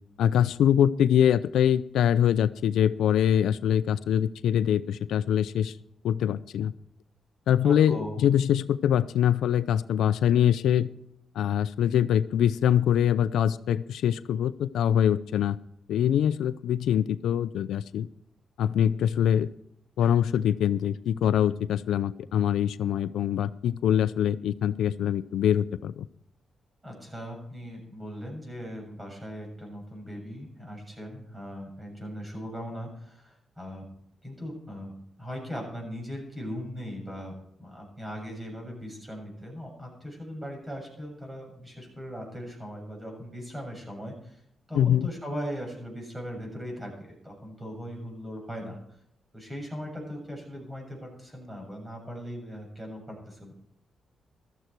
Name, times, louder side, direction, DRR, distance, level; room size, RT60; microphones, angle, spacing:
voice 1, 0.2-5.7 6.0-6.7 7.5-10.9 11.3-15.6 15.9-18.1 18.6-19.5 20.0-26.1 44.7-45.1, left 9 dB, 90° left, 15 dB, 0.5 m, -24 dB
voice 2, 7.6-8.2 26.8-33.8 34.2-34.9 35.2-44.4 44.7-48.8 49.3-53.5, equal, 15° right, 1 dB, 7.2 m, -39 dB
15.0 x 13.0 x 4.6 m, 0.72 s
cardioid pair, 85°, 0 cm